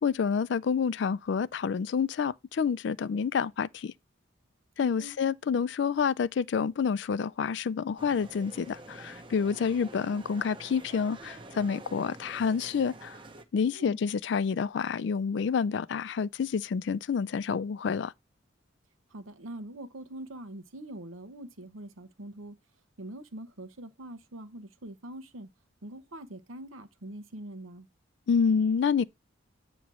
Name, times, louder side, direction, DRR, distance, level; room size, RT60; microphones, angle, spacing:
voice 1, 0.0-3.9 4.8-13.2 13.5-18.1 28.3-29.0, left 6 dB, 60° left, 0.3 m, -28 dB
voice 2, 4.8-5.1 13.7-14.0 19.1-22.6 23.0-25.5 25.8-27.9, right 1 dB, 85° right, 1.0 m, -43 dB
sound 1, 8.0-13.4, right 2 dB, 25° right, 0.7 m, -47 dB
8.3 x 3.0 x 6.0 m
head